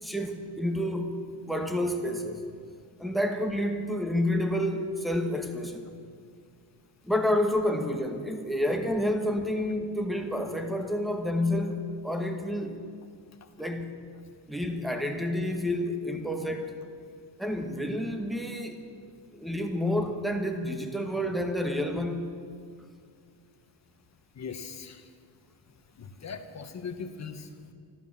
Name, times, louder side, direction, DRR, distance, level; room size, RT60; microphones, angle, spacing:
voice 1, 0.0-1.2 1.5-2.4 3.0-6.0 7.0-12.8 13.6-13.9 14.5-16.7 17.4-18.9 19.3-22.3, left 1 dB, ahead, 5 dB, 1.1 m, -29 dB
voice 2, 24.4-25.0 26.0-27.7, left 5 dB, 35° left, 6 dB, 1.2 m, -40 dB
13.5 x 12.5 x 7.3 m, 2.2 s
wide cardioid pair, 165°, 44 cm